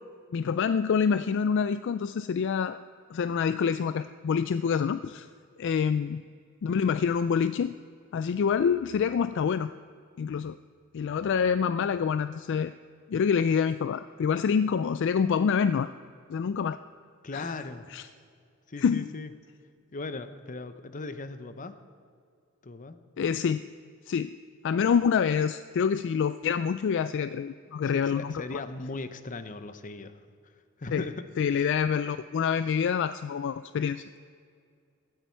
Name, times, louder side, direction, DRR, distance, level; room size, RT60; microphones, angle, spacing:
voice 1, 0.3-2.8 3.1-5.3 5.6-6.2 6.6-7.7 8.1-9.7 10.2-10.6 10.9-12.7 13.1-15.9 16.3-16.8 17.3-17.5 17.9-18.1 18.8-19.1 23.2-23.6 24.1-24.3 24.6-28.6 30.9-31.0 31.4-34.0, left 6 dB, 60° left, 13 dB, 0.3 m, -26 dB
voice 2, 17.2-17.9 18.7-19.3 19.9-21.8 22.6-23.0 27.8-30.2 30.8-31.2 31.5-31.7, left 3 dB, 40° left, 11 dB, 0.8 m, -38 dB
16.5 x 13.5 x 4.5 m, 2.3 s
head